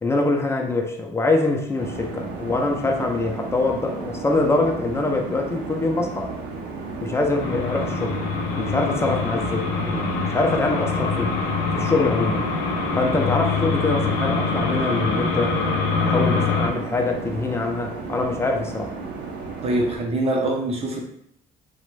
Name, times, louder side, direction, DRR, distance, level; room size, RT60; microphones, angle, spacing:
voice 1, 0.0-6.3 7.0-8.2 8.6-11.3 11.7-12.5 12.9-15.5 16.0-18.9, left 2 dB, 15° left, 2 dB, 0.4 m, -24 dB
sound 1, 1.8-20.0, right 4 dB, 80° right, 0.6 m, -34 dB
sound 2, 7.4-16.7, left 4 dB, 80° left, 0.5 m, -25 dB
voice 2, 19.6-21.0, right 1 dB, 35° right, 1 dB, 0.6 m, -23 dB
2.5 x 2.1 x 3.1 m, 0.72 s
cardioid pair, 110°, 17 cm